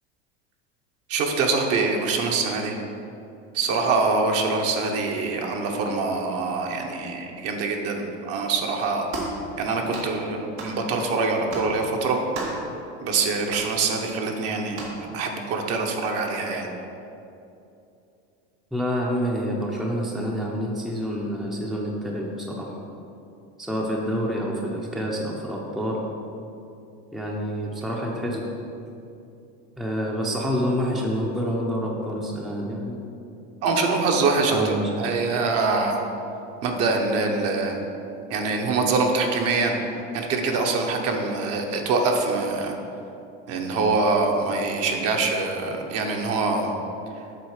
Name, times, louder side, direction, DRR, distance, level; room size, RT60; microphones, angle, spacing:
voice 1, 1.1-2.7 3.5-9.1 9.6-12.2 13.0-14.9 15.1-16.7 33.6-36.0 36.6-37.8 38.3-39.7 40.1-42.8 43.5-46.7, right 3 dB, 45° right, 2 dB, 1.1 m, -24 dB
sound 1, 9.1-9.4 9.9-10.1 10.6-10.8 11.5-11.7 12.3-12.7 13.5-13.7 14.7-15.0, right 3 dB, 85° right, 2.0 m, -33 dB
voice 2, 18.7-22.7 23.6-26.0 27.1-28.4 29.8-33.0 34.5-35.1, equal, ahead, -2 dB, 0.7 m, -27 dB
8.1 x 4.1 x 6.5 m, 2.7 s
supercardioid pair, 130°, 33 cm